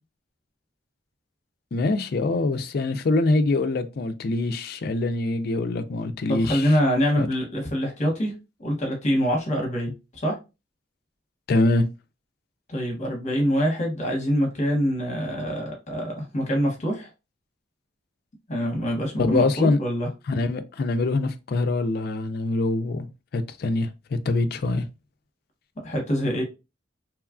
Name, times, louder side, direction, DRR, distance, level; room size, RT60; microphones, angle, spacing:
voice 1, 1.7-6.7 7.2-7.3 11.5-11.9 19.2-19.8 20.3-23.1 23.3-24.8, left 2 dB, 55° left, 0.4 m, -24 dB
voice 2, 6.3-8.3 8.6-9.9 10.2-10.4 12.7-17.1 18.5-20.1 25.8-26.4, equal, 40° left, 0.9 m, -25 dB
3.0 x 2.3 x 2.4 m
head